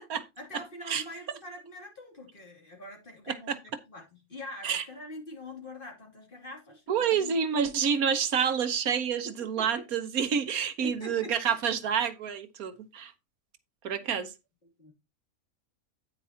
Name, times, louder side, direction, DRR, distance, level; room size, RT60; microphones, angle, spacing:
voice 1, 0.4-3.6 3.9-7.6 9.4-9.9 10.8-11.6 14.0-14.3 14.8-14.9, left 1 dB, 35° left, 2.9 m, -44 dB
voice 2, 6.9-13.1 13.8-14.3, right 7 dB, 85° right, 1.5 m, -28 dB
9.2 x 9.2 x 2.8 m
omnidirectional pair, 1.5 m